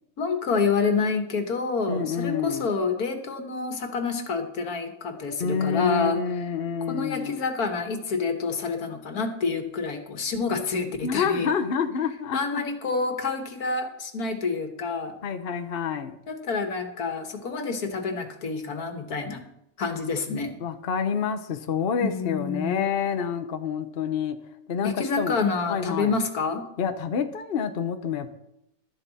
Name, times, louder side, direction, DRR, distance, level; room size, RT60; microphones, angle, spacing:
voice 1, 0.2-6.2 6.9-11.6 12.3-15.1 16.3-19.4 19.8-20.6 22.0-22.8 24.8-26.6, left 4 dB, 85° left, 6 dB, 1.9 m, -28 dB
voice 2, 1.9-2.7 5.4-7.4 11.0-12.6 15.2-16.2 20.6-24.4 24.7-25.4 25.7-26.2 26.8-28.4, left 6 dB, 45° left, 8 dB, 1.0 m, -28 dB
12.5 x 11.0 x 4.1 m, 0.80 s
omnidirectional pair, 1.5 m